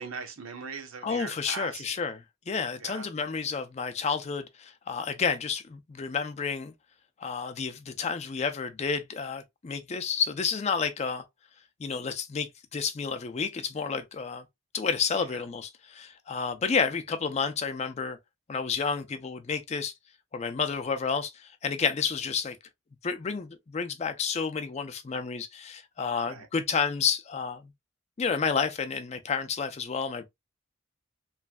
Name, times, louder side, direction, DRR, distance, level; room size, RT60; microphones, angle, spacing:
voice 1, 0.0-1.8 2.8-3.1 15.3-15.4 26.2-26.5, right 5 dB, 85° right, 0.8 m, -39 dB
voice 2, 1.0-6.7 7.2-11.2 11.8-14.4 14.7-18.2 18.5-19.9 20.3-22.6 23.0-27.7 28.2-30.3, left 5 dB, 30° left, 0.4 m, -30 dB
3.1 x 2.5 x 2.3 m
head